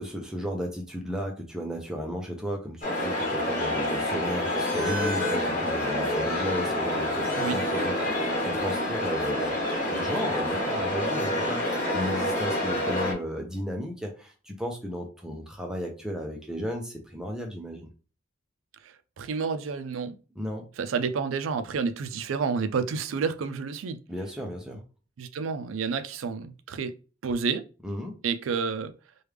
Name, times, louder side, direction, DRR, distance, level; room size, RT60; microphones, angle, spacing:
voice 1, 0.0-17.9 20.4-20.7 24.1-24.8 27.8-28.2, equal, 5° right, 0.5 m, -34 dB
sound 1, 2.8-13.1, left 1 dB, 40° left, 1.2 m, -27 dB
voice 2, 18.8-20.2 20.8-24.0 25.2-26.9 27.2-27.6 28.2-28.9, right 5 dB, 85° right, 0.4 m, -30 dB
3.3 x 2.3 x 3.2 m
head